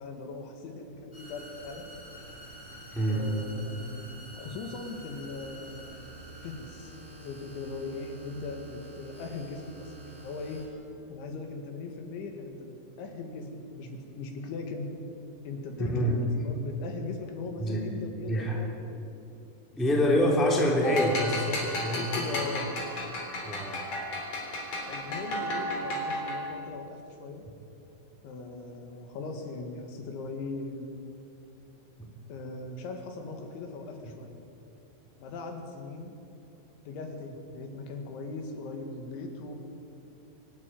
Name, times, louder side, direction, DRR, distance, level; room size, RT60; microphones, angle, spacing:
voice 1, 0.0-1.9 3.1-6.2 6.4-10.6 11.1-14.9 15.5-19.1 20.0-20.4 21.7-22.7 24.9-27.5 28.2-30.9 32.3-34.4 35.2-36.2 36.8-39.6, left 3 dB, 80° left, 4 dB, 4.3 m, -39 dB
sound 1, 1.1-10.7, right 1 dB, 25° left, 7.7 m, -47 dB
voice 2, 2.9-3.4 15.8-16.2 17.6-17.9 18.3-18.6 19.8-22.4 23.4-23.8 32.0-32.1, equal, ahead, -1 dB, 1.9 m, -26 dB
sound 2, 20.8-26.6, left 1 dB, 40° left, 4.3 m, -33 dB
25.5 x 12.0 x 9.3 m, 2.7 s
omnidirectional pair, 5.4 m